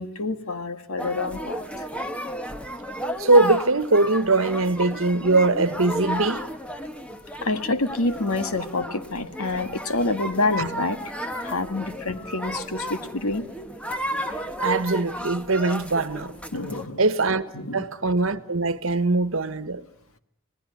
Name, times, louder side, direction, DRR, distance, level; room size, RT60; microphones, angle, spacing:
voice 1, 0.0-1.9 7.4-11.0 11.4-13.5 14.3-14.4 16.5-17.0 17.5-17.8, left 2 dB, 85° left, 1.7 m, -27 dB
sound 1, 1.0-16.9, equal, 5° left, 1.2 m, -33 dB
voice 2, 3.2-6.4 10.6-10.7 14.6-16.3 17.0-17.5 17.7-19.8, right 3 dB, 70° right, 1.3 m, -21 dB
26.5 x 19.0 x 9.6 m
head